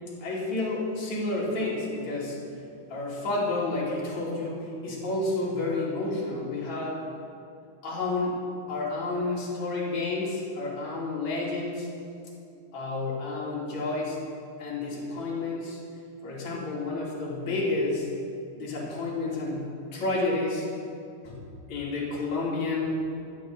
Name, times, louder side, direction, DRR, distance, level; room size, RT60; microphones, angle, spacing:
voice 1, 0.2-2.4 2.9-7.1 7.8-8.4 8.7-11.9 12.7-14.2 14.6-15.8 16.2-18.1 18.5-20.6 21.2-21.4 21.7-22.9, left 2 dB, 65° left, -5 dB, 3.8 m, -30 dB
13.0 x 6.5 x 8.3 m, 2.5 s
omnidirectional pair, 3.6 m